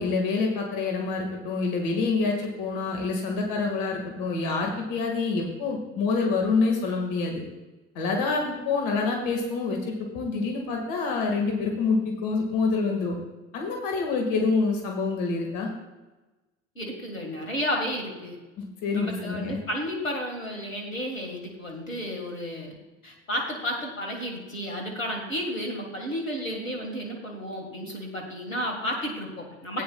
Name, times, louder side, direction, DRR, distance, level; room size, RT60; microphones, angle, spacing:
voice 1, 0.0-7.4 8.0-13.2 13.5-15.7 18.6-19.6 29.7-29.8, left 4 dB, 55° left, 1 dB, 2.1 m, -27 dB
voice 2, 16.8-18.4 18.9-22.8 23.0-29.8, equal, 90° left, 0 dB, 1.9 m, -32 dB
15.0 x 9.6 x 2.4 m, 1.1 s
figure-of-eight pair, 65°, 39 cm